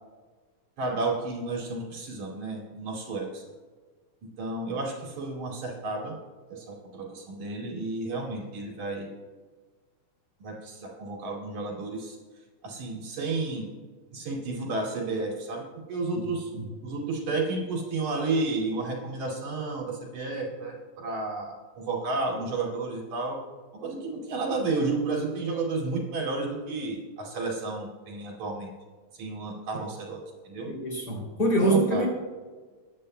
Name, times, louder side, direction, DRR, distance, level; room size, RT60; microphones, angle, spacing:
voice 1, 0.8-3.4 4.4-6.2 6.5-9.1 10.4-12.2 12.6-13.7 14.1-16.5 16.8-23.4 23.8-28.7 29.1-30.2 30.4-30.7 31.6-32.1, right 3 dB, 70° right, -2 dB, 3.7 m, -32 dB
voice 2, 30.6-32.1, right 1 dB, 35° left, -2 dB, 3.3 m, -25 dB
22.0 x 10.5 x 2.2 m, 1.4 s
omnidirectional pair, 3.4 m